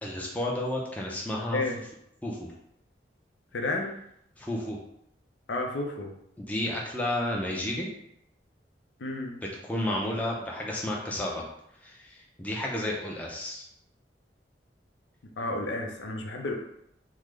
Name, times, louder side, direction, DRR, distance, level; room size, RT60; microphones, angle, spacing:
voice 1, 0.0-1.6 2.2-2.4 4.4-4.8 6.4-7.9 9.6-11.4 11.8-13.6, left 1 dB, 10° left, -3 dB, 0.4 m, -31 dB
voice 2, 3.5-3.9 5.5-6.1 9.0-9.4 15.4-16.5, left 2 dB, 90° left, 2 dB, 0.5 m, -31 dB
3.6 x 2.1 x 3.1 m, 0.76 s
head